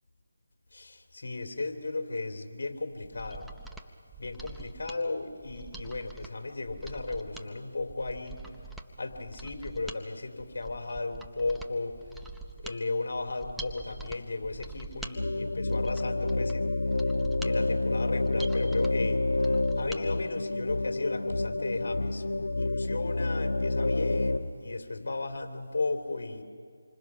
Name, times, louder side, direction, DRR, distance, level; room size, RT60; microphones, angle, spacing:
voice 1, 0.7-3.5 4.2-8.4 9.0-12.0 12.6-16.8 17.4-19.2 19.7-26.4, left 3 dB, 60° left, 5 dB, 3.0 m, -35 dB
Mechanisms, 3.0-20.0 20.4-20.5, right 3 dB, ahead, 0.7 m, -45 dB
sound 1, 15.2-24.4, left 2 dB, 80° left, 1.4 m, -28 dB
27.0 x 25.0 x 6.2 m, 2.2 s
figure-of-eight pair, 165°, 0 cm